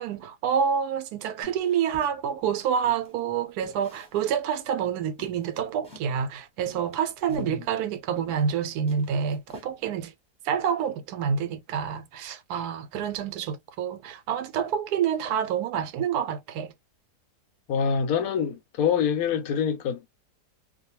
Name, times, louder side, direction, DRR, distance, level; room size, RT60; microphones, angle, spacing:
voice 1, 0.0-10.1 10.4-16.7, right 7 dB, 75° right, 1.1 m, -28 dB
sound 1, 1.4-3.2 3.6-4.6 4.8-4.9 5.2-6.1 6.6-8.6 8.8-10.0, left 2 dB, 5° left, 0.8 m, -48 dB
voice 2, 17.7-20.1, left 7 dB, 70° left, 0.9 m, -25 dB
2.5 x 2.2 x 2.8 m
omnidirectional pair, 1.7 m